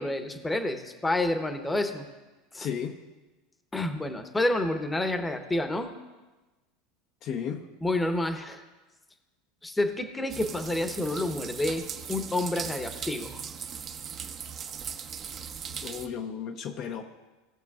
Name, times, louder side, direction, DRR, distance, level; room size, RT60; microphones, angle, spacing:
voice 1, 0.0-2.1 2.5-2.7 3.7-5.9 7.8-8.6 9.6-13.4, left 1 dB, 10° left, 7 dB, 0.9 m, -29 dB
voice 2, 2.6-3.0 7.2-7.6 15.8-17.0, left 8 dB, 50° left, 5 dB, 0.7 m, -34 dB
sound 1, 10.3-16.1, right 7 dB, 40° right, 0.8 m, -39 dB
17.5 x 6.7 x 2.4 m, 1.2 s
hypercardioid pair, 95°, 0 cm